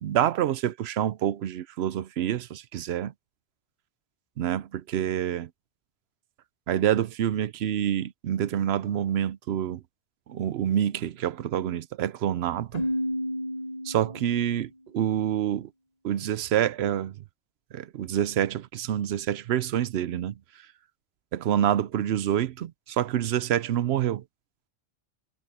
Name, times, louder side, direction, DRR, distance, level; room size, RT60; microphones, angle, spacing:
voice 1, 0.0-3.1 4.4-5.5 6.7-9.8 10.3-12.9 13.8-15.7 16.0-17.2 17.7-20.4 21.3-24.2, right 10 dB, 80° right, 0.9 m, -27 dB
Keyboard (musical), 12.7-14.6, equal, 40° left, 1.0 m, -31 dB
omnidirectional pair, 1.1 m